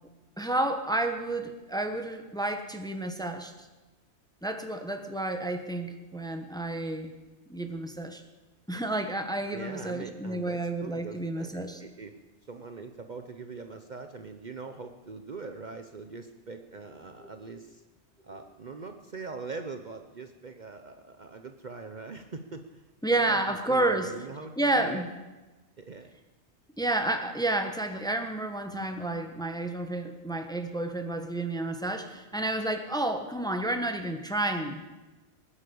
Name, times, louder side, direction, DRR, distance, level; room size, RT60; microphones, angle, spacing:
voice 1, 0.4-3.5 4.4-7.1 7.5-8.2 8.7-11.8 17.2-17.3 23.0-24.1 24.6-25.1 26.8-34.8, right 2 dB, 5° left, 6 dB, 1.1 m, -30 dB
voice 2, 9.5-12.2 12.5-17.8 18.2-22.8 23.1-25.0 25.8-26.1, right 4 dB, 45° right, 6 dB, 0.9 m, -42 dB
20.0 x 9.9 x 7.0 m, 1.2 s
omnidirectional pair, 1.2 m